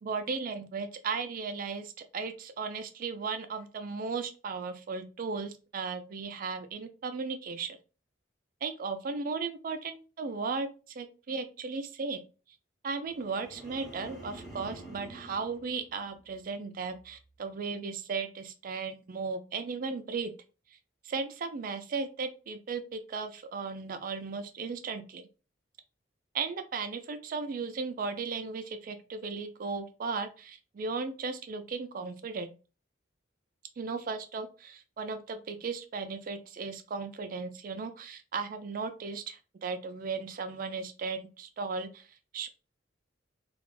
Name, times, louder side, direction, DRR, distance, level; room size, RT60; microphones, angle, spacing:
voice 1, 0.0-7.8 8.6-12.2 12.8-20.3 21.0-25.3 26.3-32.5 33.8-42.1 42.3-42.5, right 4 dB, 45° right, 9 dB, 0.3 m, -36 dB
sound 1, 13.0-16.5 16.9-17.3, right 1 dB, ahead, 0.8 m, -48 dB
2.4 x 2.1 x 3.0 m, 0.34 s
head